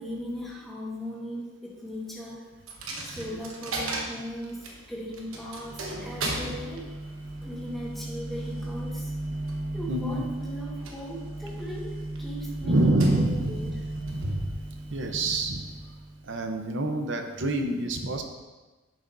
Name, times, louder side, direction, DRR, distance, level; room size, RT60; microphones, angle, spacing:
voice 1, 0.0-2.5 3.0-6.9 7.4-9.1 9.7-13.7, equal, ahead, -5 dB, 1.5 m, -38 dB
Coin (dropping), 2.7-16.4, right 1 dB, 75° right, 1.1 m, -35 dB
voice 2, 9.9-10.3 12.6-14.3 14.9-15.6 16.2-18.2, right 1 dB, 60° right, 4 dB, 0.8 m, -27 dB
10.5 x 6.1 x 2.6 m, 1.2 s
head